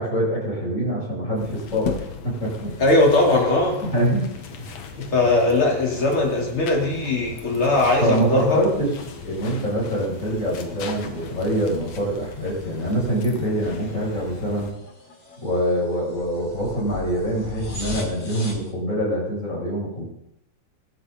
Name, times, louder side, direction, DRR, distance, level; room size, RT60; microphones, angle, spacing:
voice 1, 0.0-2.7 3.8-4.3 4.6-4.7 8.0-14.7 15.4-20.1, right 1 dB, 20° left, -4 dB, 7.9 m, -25 dB
sound 1, 1.4-14.7, left 5 dB, 55° left, 2.5 m, -38 dB
sound 2, 2.4-18.7, left 2 dB, 90° left, 7.4 m, -43 dB
voice 2, 2.8-3.8 5.0-8.6, left 2 dB, 40° left, -2 dB, 4.5 m, -19 dB
25.0 x 12.5 x 4.2 m, 0.81 s
omnidirectional pair, 3.7 m